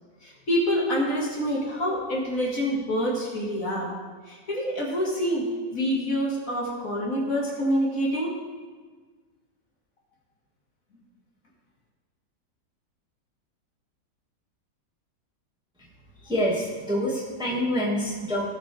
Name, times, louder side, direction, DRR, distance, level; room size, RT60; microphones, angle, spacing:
voice 1, 0.2-3.9 4.3-5.5 5.7-8.3, equal, 50° left, -4 dB, 2.4 m, -26 dB
voice 2, 16.2-18.5, equal, 5° right, -5 dB, 1.9 m, -26 dB
17.5 x 7.1 x 3.5 m, 1.4 s
omnidirectional pair, 1.9 m